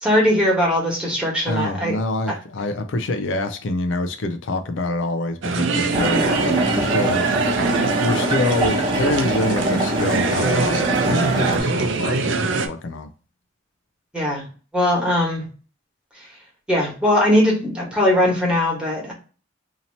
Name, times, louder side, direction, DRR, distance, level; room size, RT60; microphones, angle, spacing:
voice 1, 0.0-2.0 14.1-14.5 14.7-15.4 16.1-16.3 16.7-19.1, left 1 dB, 5° right, 1.3 m, -20 dB
voice 2, 1.4-7.2 7.5-13.1, left 2 dB, 70° left, 0.5 m, -26 dB
sound 1, 5.4-12.7, right 4 dB, 70° right, 0.5 m, -23 dB
sound 2, 5.9-11.6, right 1 dB, 25° right, 0.9 m, -24 dB
2.8 x 2.8 x 4.0 m
head